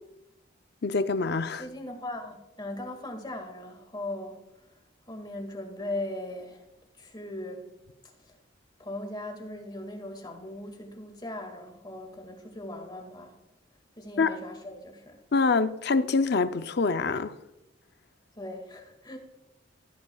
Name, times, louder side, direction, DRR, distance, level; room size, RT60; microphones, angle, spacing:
voice 1, 0.8-1.6 14.2-14.4 15.3-17.3, left 4 dB, 55° left, 0.6 m, -25 dB
voice 2, 1.6-4.8 5.1-6.6 7.0-7.7 8.2-8.4 8.8-13.4 14.0-15.2 18.4-19.2, left 1 dB, 25° left, 2.0 m, -39 dB
16.5 x 11.0 x 2.4 m
head